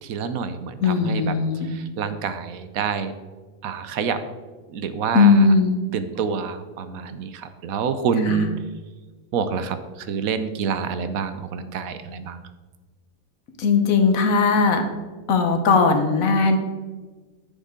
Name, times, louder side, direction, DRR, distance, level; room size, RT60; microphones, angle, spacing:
voice 1, 0.0-3.1 3.6-4.2 4.7-5.5 5.9-8.5 9.3-12.4, right 6 dB, 75° right, 10 dB, 1.1 m, -27 dB
voice 2, 0.8-1.7 5.1-5.8 8.3-8.5 13.6-14.8 15.3-16.6, left 4 dB, 70° left, 6 dB, 1.4 m, -18 dB
9.3 x 7.1 x 3.7 m, 1.3 s
omnidirectional pair, 1.5 m